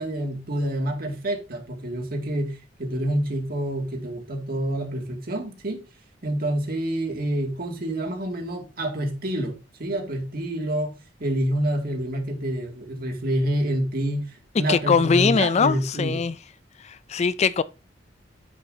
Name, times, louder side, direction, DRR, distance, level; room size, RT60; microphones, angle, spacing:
voice 1, 0.0-5.8 6.2-10.9 11.2-16.3, right 1 dB, 55° right, 2.4 m, -27 dB
voice 2, 14.7-16.3 16.8-17.6, left 5 dB, 35° left, 0.4 m, -21 dB
9.7 x 7.7 x 2.8 m
head